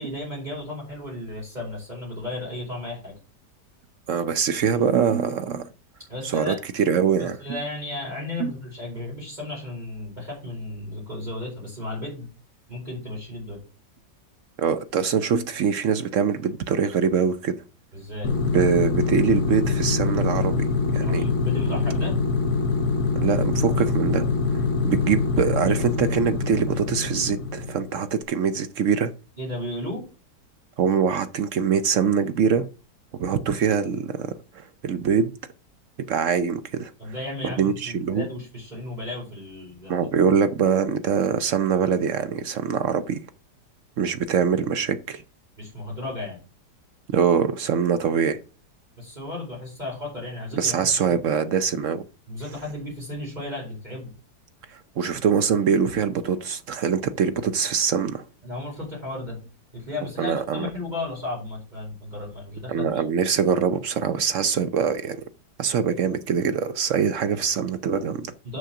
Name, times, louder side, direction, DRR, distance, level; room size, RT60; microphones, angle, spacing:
voice 1, 0.0-3.1 6.1-6.6 7.2-12.3 12.7-13.6 17.9-18.3 20.9-22.2 29.4-30.0 37.0-40.1 45.6-46.4 49.0-50.7 52.3-54.1 58.4-59.4 59.7-63.0 68.4-68.6, left 2 dB, 25° right, 4.9 m, -34 dB
voice 2, 4.1-5.7 6.2-7.6 8.4-8.5 14.6-17.5 18.5-20.7 20.9-21.2 23.2-24.3 24.5-29.1 30.8-32.7 33.2-35.3 36.1-36.9 37.4-38.3 39.9-43.2 44.0-45.2 47.1-48.4 50.6-52.1 54.7-58.2 60.2-60.7 62.7-65.2 65.6-68.3, right 7 dB, 65° right, 0.8 m, -23 dB
sound 1, 18.2-28.0, left 4 dB, 65° left, 1.5 m, -24 dB
6.4 x 6.3 x 5.8 m
omnidirectional pair, 1.8 m